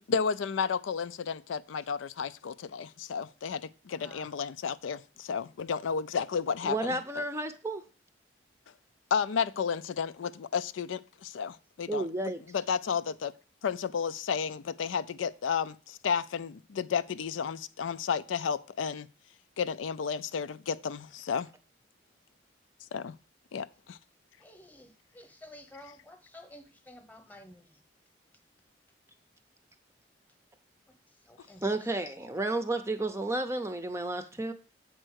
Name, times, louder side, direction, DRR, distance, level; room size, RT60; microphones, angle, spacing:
voice 1, 0.0-7.2 9.1-13.3 13.6-19.1 19.6-21.5 22.9-23.1 23.5-24.0, left 6 dB, 90° left, 0.4 m, -32 dB
voice 2, 3.9-4.3 24.4-27.8 31.2-32.2, left 1 dB, 10° left, 1.0 m, -52 dB
voice 3, 6.6-7.8 11.9-12.4 31.6-34.5, right 2 dB, 15° right, 0.5 m, -32 dB
7.7 x 4.5 x 6.3 m
head